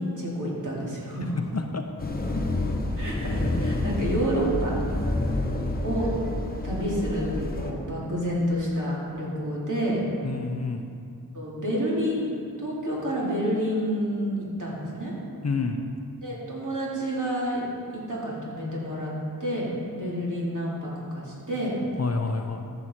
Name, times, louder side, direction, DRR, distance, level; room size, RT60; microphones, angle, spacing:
voice 1, 0.0-1.4 3.0-4.7 5.8-6.1 6.6-10.0 11.3-12.3 12.6-15.1 16.2-17.7 17.9-19.1 19.4-21.8, equal, 55° right, -5 dB, 2.9 m, -29 dB
sound 1, 2.0-7.7, left 1 dB, 25° left, 1.1 m, -28 dB
voice 2, 10.2-10.9 15.4-15.9 22.0-22.7, left 4 dB, 45° left, 5 dB, 0.7 m, -29 dB
13.5 x 6.2 x 4.5 m, 2.3 s
wide cardioid pair, 70°, 37 cm